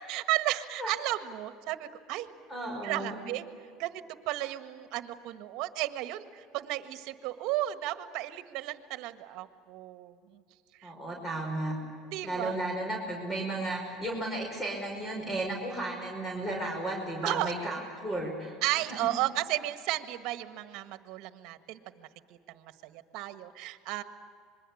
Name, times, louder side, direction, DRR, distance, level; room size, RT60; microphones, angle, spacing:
voice 1, 0.1-2.3 2.8-3.5 3.8-10.4 10.8-10.9 12.1-12.5 17.2-17.5 18.6-22.1 22.5-24.0, right 16 dB, 65° right, 10 dB, 1.6 m, -34 dB
voice 2, 2.5-3.2 10.8-11.7 12.2-19.1, right 1 dB, 15° left, 0 dB, 5.4 m, -34 dB
26.5 x 22.0 x 8.6 m, 2.4 s
supercardioid pair, 125°, 0 cm